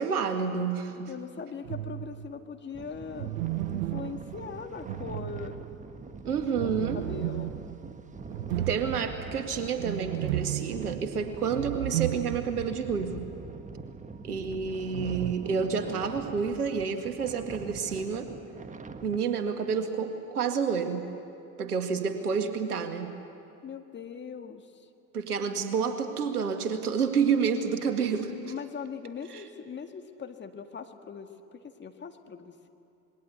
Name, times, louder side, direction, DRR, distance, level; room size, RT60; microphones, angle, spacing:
voice 1, 0.0-1.1 6.2-7.1 8.5-13.3 14.2-18.3 19.0-21.1 21.6-23.1 25.1-28.5 29.3-29.4, right 6 dB, 80° right, 6 dB, 2.1 m, -29 dB
voice 2, 1.1-3.3 3.7-5.6 6.5-7.5 23.6-24.9 28.5-32.7, left 6 dB, 25° left, 6 dB, 1.9 m, -40 dB
sound 1, 1.6-2.4 3.1-5.9 6.6-12.8 13.1-13.2 14.9-15.3, right 16 dB, 65° right, 0.8 m, -34 dB
sound 2, 2.7-19.2, right 4 dB, 15° right, 1.4 m, -43 dB
27.0 x 21.5 x 8.2 m, 2.6 s
hypercardioid pair, 80°, 44 cm